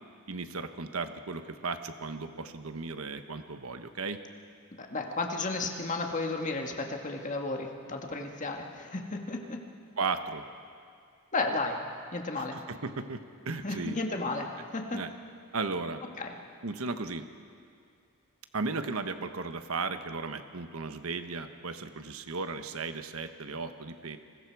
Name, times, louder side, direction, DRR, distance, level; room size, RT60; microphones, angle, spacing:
voice 1, 0.3-4.2 10.0-10.4 12.4-14.0 14.9-15.1 15.5-16.0 16.6-17.3 18.5-24.2, right 4 dB, 75° right, 8 dB, 1.1 m, -35 dB
voice 2, 4.8-9.6 11.3-11.8 12.1-12.6 13.6-15.0 16.2-16.4, left 3 dB, 35° left, 2 dB, 1.8 m, -33 dB
30.0 x 21.0 x 4.8 m, 2.3 s
head